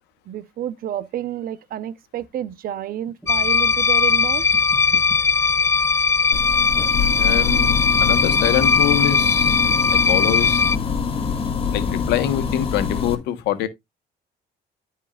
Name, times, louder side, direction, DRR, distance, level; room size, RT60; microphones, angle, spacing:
voice 1, 0.3-4.4, right 11 dB, 60° right, 1.0 m, -30 dB
sound 1, 3.1-3.6 4.5-5.2 6.3-6.6 8.1-8.4, right 1 dB, 5° right, 5.4 m, -43 dB
sound 2, 3.3-10.8, left 5 dB, 15° left, 0.3 m, -19 dB
sound 3, 6.3-13.1, left 6 dB, 35° left, 2.0 m, -25 dB
voice 2, 7.2-9.6 9.9-10.6 11.7-13.7, left 12 dB, 90° left, 1.4 m, -24 dB
13.5 x 4.6 x 2.5 m
cardioid pair, 110°, 17 cm